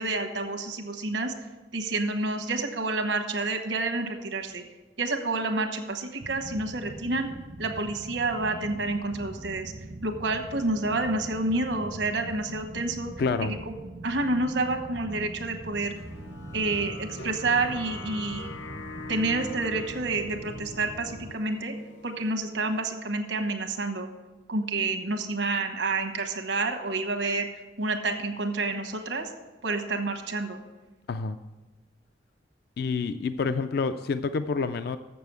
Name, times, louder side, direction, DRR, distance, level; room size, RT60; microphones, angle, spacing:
voice 1, 0.0-1.3 1.7-4.6 5.0-7.3 7.6-9.7 10.0-13.1 13.4-13.6 14.0-15.9 16.5-18.5 19.1-21.7 22.0-24.1 24.5-27.5 27.8-29.3 29.6-30.6, right 2 dB, 85° right, 5 dB, 1.1 m, -29 dB
sound 1, 6.2-21.3, right 2 dB, 40° right, 0.4 m, -42 dB
voice 2, 13.2-13.5 31.1-31.4 32.8-35.0, left 4 dB, 60° left, 11 dB, 0.4 m, -28 dB
sound 2, 16.0-22.8, left 3 dB, 85° left, 0.9 m, -44 dB
7.4 x 6.9 x 8.0 m, 1.1 s
head